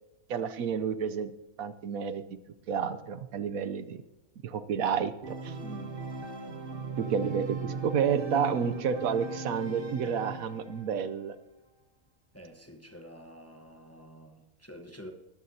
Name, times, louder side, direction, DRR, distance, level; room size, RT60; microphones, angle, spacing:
voice 1, 0.3-1.3 1.6-2.2 2.7-4.0 4.4-5.5 7.0-11.4, right 7 dB, 75° right, 1.1 m, -30 dB
Organ, 5.2-11.0, right 3 dB, 45° right, 1.2 m, -38 dB
voice 2, 5.6-5.9 12.3-15.1, equal, 10° left, 0.9 m, -48 dB
19.5 x 14.0 x 2.8 m
omnidirectional pair, 1.5 m